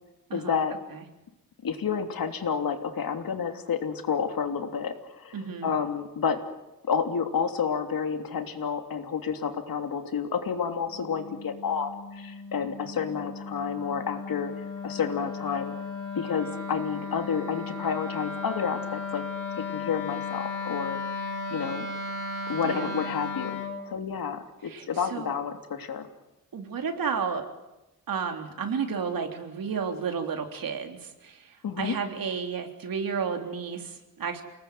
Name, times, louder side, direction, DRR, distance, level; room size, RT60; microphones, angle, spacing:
voice 1, 0.3-0.7 1.6-6.4 6.8-15.7 16.1-19.2 19.7-21.8 22.5-23.6 23.9-26.1 31.6-32.0, left 6 dB, 80° left, 5 dB, 3.1 m, -30 dB
voice 2, 5.3-5.7 22.6-23.0 24.7-25.3 26.5-27.4 28.1-34.4, right 6 dB, 75° right, 4 dB, 3.6 m, -32 dB
Wind instrument woodwind instrument, 10.9-23.8, left 4 dB, 60° left, 4.6 m, -35 dB
29.0 x 19.0 x 9.4 m, 0.97 s
wide cardioid pair, 155°, 35 cm